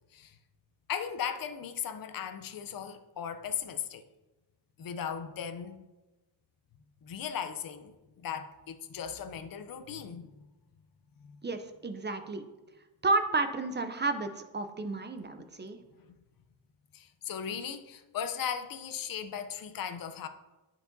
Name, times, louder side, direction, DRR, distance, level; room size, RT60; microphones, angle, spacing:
voice 1, 0.9-4.0 4.8-5.8 7.0-10.5 11.2-11.4 16.9-20.3, left 8 dB, 45° left, 0.5 m, -37 dB
voice 2, 11.4-12.4 13.0-15.8, right 3 dB, 25° right, 0.4 m, -31 dB
10.5 x 4.6 x 2.6 m
wide cardioid pair, 115°, 49 cm